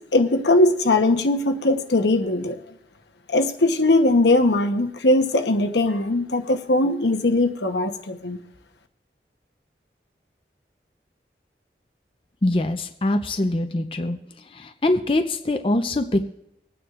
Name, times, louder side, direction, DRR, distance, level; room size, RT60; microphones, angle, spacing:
voice 1, 0.1-2.6 3.3-8.4, left 2 dB, 85° left, 6 dB, 1.0 m, -20 dB
voice 2, 12.4-14.2 14.6-16.2, left 1 dB, 30° left, 6 dB, 0.5 m, -23 dB
25.0 x 9.4 x 2.5 m, 0.81 s
head